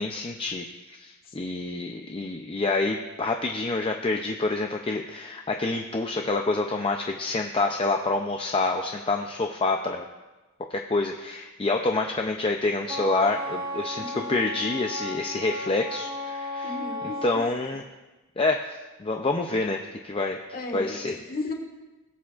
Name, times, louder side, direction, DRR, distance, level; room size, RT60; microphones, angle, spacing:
voice 1, 0.0-10.1 10.7-16.8 17.2-17.8 18.4-18.6 19.0-20.4 20.7-21.2, left 3 dB, 25° left, 3 dB, 0.5 m, -27 dB
Wind instrument woodwind instrument, 12.9-17.5, left 1 dB, 20° right, 1.0 m, -34 dB
voice 2, 14.0-14.5 16.6-17.4 20.5-21.5, left 2 dB, 40° left, 2 dB, 1.6 m, -35 dB
19.0 x 8.5 x 2.5 m, 1.1 s
head